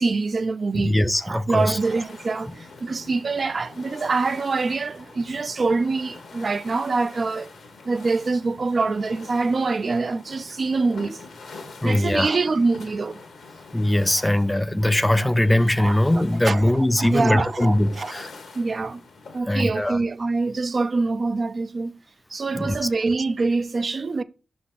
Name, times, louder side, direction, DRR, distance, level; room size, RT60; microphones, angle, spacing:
voice 1, 0.0-0.9 1.2-7.5 7.8-11.2 11.6-13.2 15.2-15.3 15.8-16.7 17.0-18.1 18.5-19.0 19.3-22.0 22.3-24.2, right 3 dB, 50° right, 0.4 m, -25 dB
voice 2, 0.7-1.8 11.8-12.3 13.7-18.3 19.5-20.0 22.5-22.9, left 1 dB, 15° left, 0.5 m, -21 dB
sound 1, 1.5-19.4, left 3 dB, 80° left, 1.4 m, -44 dB
5.4 x 4.2 x 5.5 m
cardioid pair, 60°, 0 cm